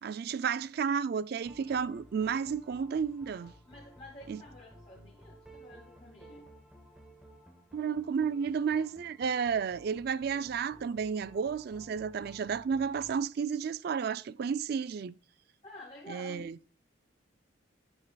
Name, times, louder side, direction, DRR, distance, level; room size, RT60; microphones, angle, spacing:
voice 1, 0.0-3.5 4.3-4.4 7.7-15.1 16.1-16.6, right 6 dB, 50° right, 0.3 m, -32 dB
sound 1, 1.4-13.2, right 1 dB, 5° right, 0.9 m, -55 dB
voice 2, 3.6-6.5 15.6-16.5, left 1 dB, 25° left, 1.9 m, -50 dB
9.7 x 6.7 x 2.2 m
head